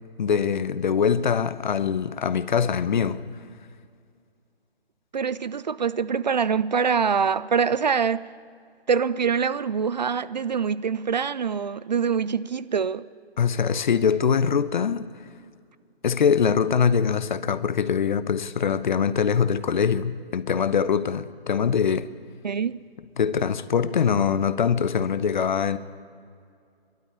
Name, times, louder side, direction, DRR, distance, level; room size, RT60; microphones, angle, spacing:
voice 1, 0.2-3.2 13.4-15.1 16.0-22.1 23.2-25.8, left 7 dB, 50° left, 0.9 m, -23 dB
voice 2, 5.1-8.3 8.9-13.0 22.4-22.8, right 6 dB, 45° right, 0.4 m, -24 dB
22.5 x 12.5 x 9.8 m
hypercardioid pair, 160°, 31 cm